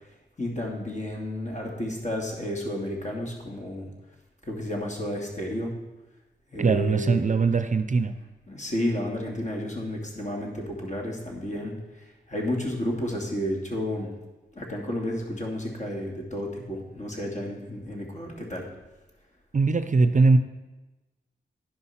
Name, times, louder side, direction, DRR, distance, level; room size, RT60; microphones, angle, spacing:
voice 1, 0.4-3.9 4.5-5.7 6.5-7.2 8.5-11.7 12.3-14.1 14.6-18.7, left 1 dB, 40° left, 0 dB, 2.6 m, -31 dB
voice 2, 6.6-8.1 19.5-20.4, right 4 dB, 40° right, 10 dB, 0.6 m, -21 dB
10.5 x 5.4 x 5.8 m, 1.1 s
cardioid pair, 50°, 19 cm